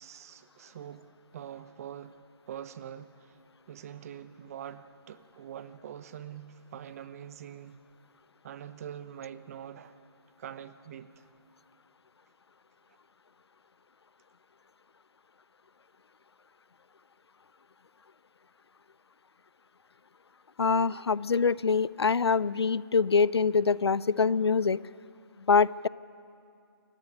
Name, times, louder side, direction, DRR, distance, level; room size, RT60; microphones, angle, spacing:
voice 1, 0.0-2.2 2.5-3.4 3.7-7.8 8.4-10.0 10.4-11.3, right 9 dB, 35° right, 1.0 m, -44 dB
voice 2, 20.6-24.8 25.5-25.9, left 5 dB, 85° left, 0.5 m, -24 dB
28.5 x 14.5 x 9.9 m
figure-of-eight pair, 150°, 13 cm